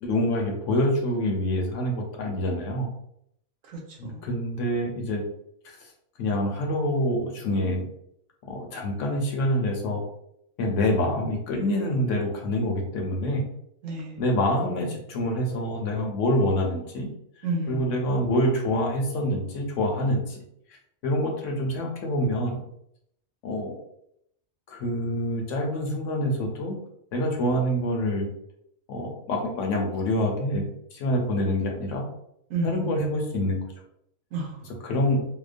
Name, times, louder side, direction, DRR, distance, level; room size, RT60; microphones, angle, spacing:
voice 1, 0.0-2.9 4.0-5.2 6.2-7.8 8.5-10.0 10.6-13.5 14.2-17.1 17.7-20.4 21.0-22.6 23.4-23.8 24.7-26.7 27.1-28.3 28.9-30.6 30.9-32.0 32.6-33.6 34.8-35.2, left 1 dB, 70° left, 1 dB, 0.9 m, -26 dB
voice 2, 3.6-4.3 13.8-14.2 17.4-18.1 32.5-33.0 34.3-34.8, right 2 dB, 75° right, -1 dB, 1.1 m, -31 dB
2.8 x 2.1 x 2.4 m, 0.73 s
omnidirectional pair, 1.4 m